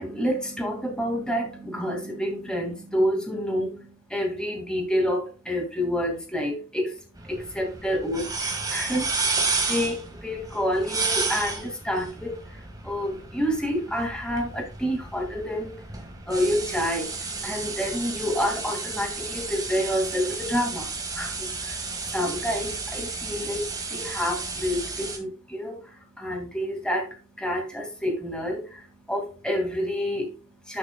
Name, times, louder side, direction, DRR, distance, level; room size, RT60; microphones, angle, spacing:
voice 1, 0.0-30.8, equal, 5° left, 1 dB, 2.4 m, -29 dB
sound 1, 7.1-25.2, right 4 dB, 20° right, 2.0 m, -32 dB
11.5 x 6.6 x 2.4 m, 0.35 s
head